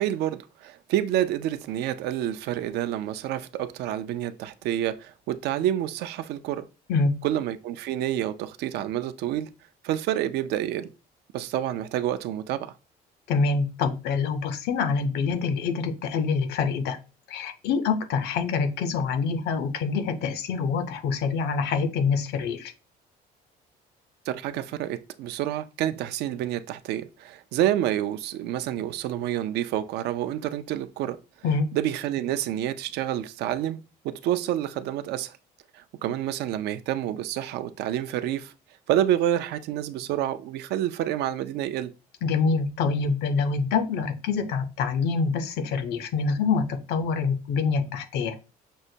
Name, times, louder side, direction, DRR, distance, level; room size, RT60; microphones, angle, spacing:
voice 1, 0.0-6.7 7.2-9.5 9.8-10.9 11.3-12.7 24.3-31.2 31.7-33.8 34.0-35.4 35.7-38.5 38.9-41.9, right 12 dB, 80° right, 0.4 m, -28 dB
voice 2, 13.3-17.0 17.3-22.7 31.4-31.7 42.2-48.5, left 5 dB, 80° left, 0.6 m, -26 dB
6.2 x 2.1 x 2.7 m
cardioid pair, 110°, 17 cm